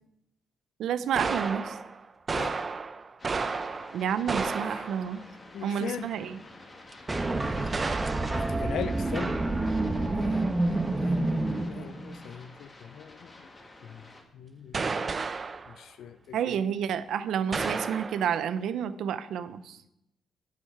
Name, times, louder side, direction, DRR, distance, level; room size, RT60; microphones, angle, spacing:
voice 1, 0.8-1.8 3.9-5.2 5.6-6.4 16.3-19.8, right 8 dB, 75° right, 0.7 m, -30 dB
sound 1, 1.2-5.2 6.9-7.0 7.7-8.4 14.7-15.8 17.5-18.3, right 4 dB, 35° right, 0.7 m, -32 dB
sound 2, 3.2-14.2, left 2 dB, 35° left, 2.2 m, -50 dB
voice 2, 4.6-4.9 5.5-6.1 8.3-9.4 9.7-13.5 13.8-14.0 14.3-15.3 15.7-16.6, left 8 dB, 75° left, 0.6 m, -41 dB
sound 3, 7.1-12.2, right 2 dB, 20° right, 1.2 m, -28 dB
10.5 x 8.5 x 4.8 m
cardioid pair, 85°, 0 cm